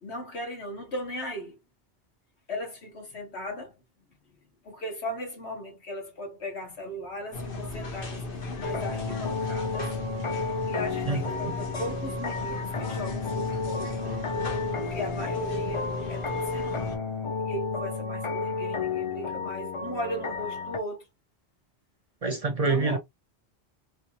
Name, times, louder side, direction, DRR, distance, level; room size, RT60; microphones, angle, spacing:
voice 1, 0.0-1.6 2.5-3.7 4.6-9.9 10.7-13.9 14.8-17.0 17.4-21.1 22.6-23.0, equal, 80° left, 1.8 m, -37 dB
sound 1, 7.3-17.0, left 2 dB, 60° left, 1.3 m, -36 dB
sound 2, 8.6-20.8, left 4 dB, 35° left, 0.5 m, -32 dB
voice 2, 11.1-11.5 22.2-23.0, right 3 dB, 45° right, 0.6 m, -27 dB
3.3 x 3.3 x 2.9 m
omnidirectional pair, 1.1 m